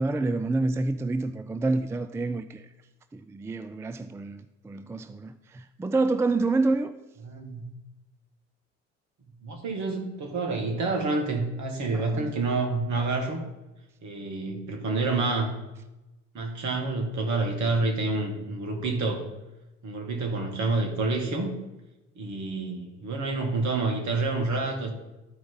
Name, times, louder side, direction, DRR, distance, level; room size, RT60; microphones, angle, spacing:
voice 1, 0.0-2.7 3.1-6.9 11.9-12.3, right 3 dB, 10° right, 0.4 m, -28 dB
voice 2, 7.2-7.7 9.4-13.4 14.0-15.5 16.3-19.3 19.8-21.5 22.2-24.9, right 3 dB, 50° right, 2.1 m, -28 dB
12.5 x 4.8 x 4.0 m
hypercardioid pair, 60°, 36 cm